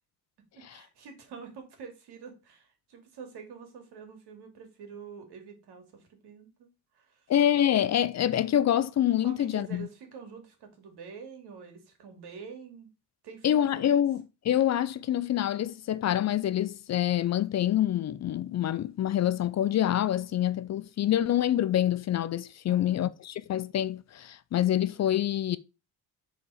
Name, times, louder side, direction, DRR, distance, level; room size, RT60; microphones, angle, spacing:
voice 1, 0.5-6.7 6.9-7.3 9.2-12.9 13.2-14.0 22.7-23.1, right 6 dB, 75° right, 2.5 m, -46 dB
voice 2, 7.3-9.9 13.4-25.6, left 11 dB, 45° left, 0.5 m, -26 dB
7.2 x 4.2 x 4.9 m
cardioid pair, 120°, 39 cm